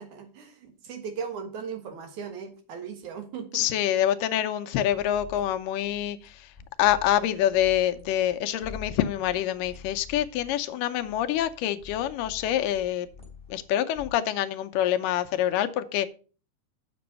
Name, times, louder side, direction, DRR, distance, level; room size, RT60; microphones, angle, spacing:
voice 1, 0.0-3.7, right 6 dB, 70° right, 2.8 m, -38 dB
voice 2, 3.5-6.5 6.8-13.1 13.5-16.1, left 11 dB, 85° left, 2.2 m, -26 dB
sound 1, 4.9-8.4 8.6-13.6 13.9-14.1, left 6 dB, ahead, 2.5 m, -47 dB
7.6 x 6.1 x 5.2 m
omnidirectional pair, 3.8 m